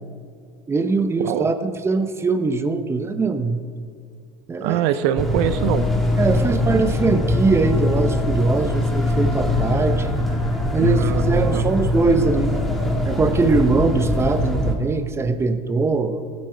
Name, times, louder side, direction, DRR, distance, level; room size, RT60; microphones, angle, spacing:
voice 1, 0.7-3.6 4.5-4.8 6.2-10.1 10.7-12.5 13.0-16.2, right 3 dB, 15° right, 9 dB, 0.8 m, -21 dB
voice 2, 4.6-5.9 10.8-11.7, right 11 dB, 65° right, 12 dB, 0.6 m, -23 dB
sound 1, 5.2-14.7, left 1 dB, ahead, 1.9 m, -22 dB
16.0 x 9.7 x 4.5 m, 2.2 s
supercardioid pair, 110°, 17 cm